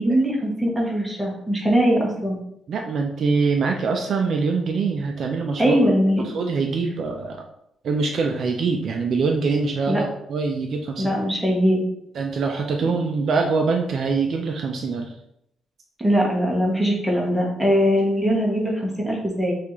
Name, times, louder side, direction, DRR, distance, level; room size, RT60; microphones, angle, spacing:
voice 1, 0.0-2.4 5.6-6.2 9.9-10.0 11.0-11.8 16.0-19.5, equal, 5° right, -3 dB, 0.9 m, -21 dB
voice 2, 2.7-5.8 6.2-7.4 7.8-11.1 12.1-15.1, right 4 dB, 45° right, 2 dB, 0.4 m, -24 dB
5.6 x 2.4 x 3.0 m, 0.77 s
cardioid pair, 170°, 0 cm